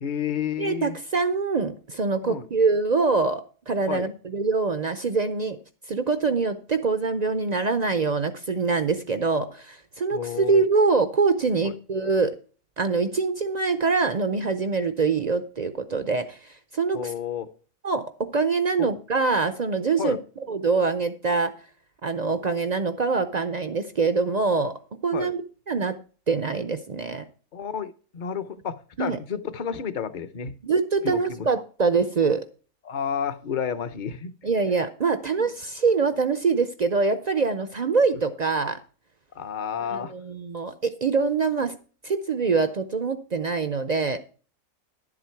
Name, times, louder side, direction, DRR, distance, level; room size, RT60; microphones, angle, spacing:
voice 1, 0.0-1.0 2.2-2.5 3.9-4.1 10.1-10.6 11.6-11.7 16.9-17.5 18.8-18.9 20.0-20.2 22.3-22.4 25.1-25.3 27.5-30.6 31.0-31.5 32.8-34.5 35.4-35.5 39.3-40.1, left 7 dB, 45° left, 12 dB, 0.7 m, -31 dB
voice 2, 0.6-5.6 5.9-12.3 12.8-16.4 16.7-17.1 17.8-20.2 20.5-21.5 22.0-24.8 25.0-25.4 25.7-25.9 26.3-27.2 29.0-29.2 30.6-32.5 34.4-38.8 39.9-41.8 42.0-44.2, right 4 dB, 60° right, 10 dB, 0.4 m, -24 dB
11.0 x 7.6 x 4.5 m, 0.39 s
omnidirectional pair, 1.6 m